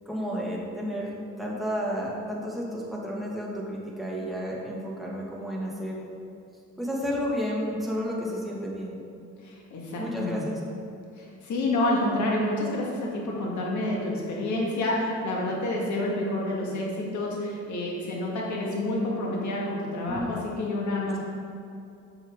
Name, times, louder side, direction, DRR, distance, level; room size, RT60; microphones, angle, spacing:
voice 1, 0.0-1.1 1.4-6.0 6.8-9.0 10.0-10.6 20.0-20.4, equal, ahead, -4 dB, 1.8 m, -31 dB
voice 2, 9.4-10.5 11.2-21.2, left 1 dB, 70° left, -3 dB, 1.8 m, -28 dB
7.2 x 6.8 x 3.6 m, 2.6 s
cardioid pair, 90°, 30 cm